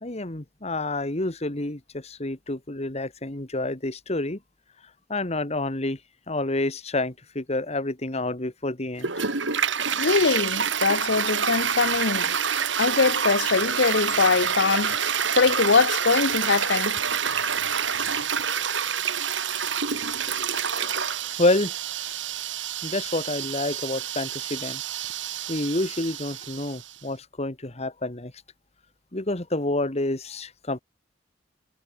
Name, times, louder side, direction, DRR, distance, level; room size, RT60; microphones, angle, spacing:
voice 1, 0.0-4.4 5.1-6.0 6.3-9.1 20.7-21.8 22.0-22.2 22.8-24.8 25.5-28.3 29.1-30.8, left 2 dB, 35° left, 2.0 m, -28 dB
Toilet flush, 9.0-26.9, right 7 dB, 90° right, 3.5 m, -27 dB
voice 2, 10.0-12.3 12.8-15.0 15.4-16.9, left 4 dB, 70° left, 0.8 m, -22 dB
head